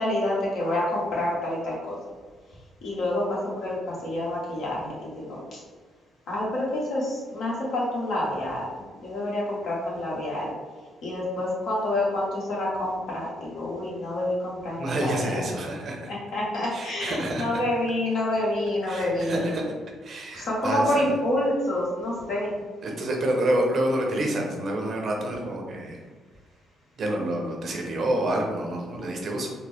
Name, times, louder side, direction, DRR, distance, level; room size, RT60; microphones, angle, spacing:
voice 1, 0.0-2.0 2.8-5.6 6.3-8.7 9.0-10.5 11.0-15.4 16.1-19.4 20.3-22.5, left 1 dB, 70° left, -5 dB, 1.3 m, -28 dB
voice 2, 14.8-16.1 16.7-17.6 18.9-19.7 20.0-21.0 22.8-26.0 27.0-29.5, right 1 dB, 55° right, 1 dB, 0.8 m, -28 dB
3.8 x 2.1 x 3.5 m, 1.5 s
cardioid pair, 90°, 0 cm